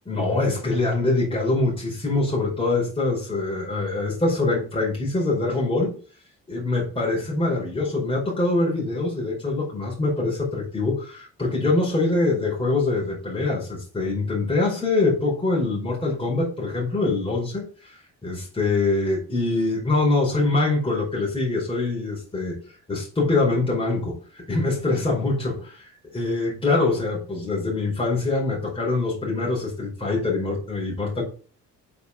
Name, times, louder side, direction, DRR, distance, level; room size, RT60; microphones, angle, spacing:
voice 1, 0.0-5.9 6.5-17.9 18.2-22.6 22.9-31.2, left 2 dB, 20° left, 5.0 m, -24 dB
6.8 x 5.4 x 6.9 m
cardioid pair, 90°, 30 cm